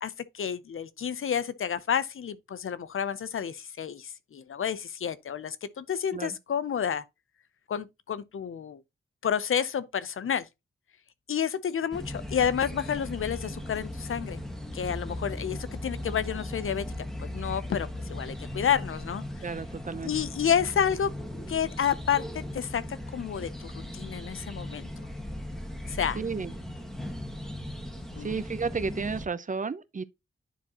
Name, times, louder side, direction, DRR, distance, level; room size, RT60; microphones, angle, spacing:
voice 1, 0.0-7.0 7.7-8.8 9.2-10.5 11.3-14.4 14.7-16.9 17.2-19.2 20.0-21.1 21.5-24.9 25.9-26.2 28.1-28.3, left 8 dB, 80° left, 0.6 m, -30 dB
sound 1, 11.9-29.3, left 1 dB, ahead, 1.6 m, -38 dB
voice 2, 19.4-20.1 26.1-26.5 28.2-30.0, right 5 dB, 40° right, 0.6 m, -32 dB
10.0 x 4.7 x 2.9 m
wide cardioid pair, 120°, 21 cm